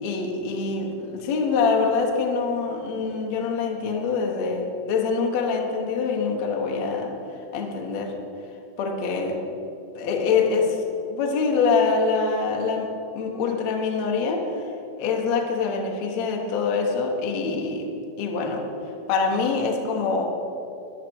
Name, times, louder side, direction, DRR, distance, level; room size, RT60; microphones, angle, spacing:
voice 1, 0.0-7.1 7.5-8.1 8.8-9.4 9.9-10.8 11.1-12.9 13.1-14.4 15.0-17.9 18.2-18.6 19.1-20.2, left 4 dB, 80° left, 1 dB, 1.5 m, -24 dB
14.0 x 10.0 x 4.7 m, 2.8 s
omnidirectional pair, 5.3 m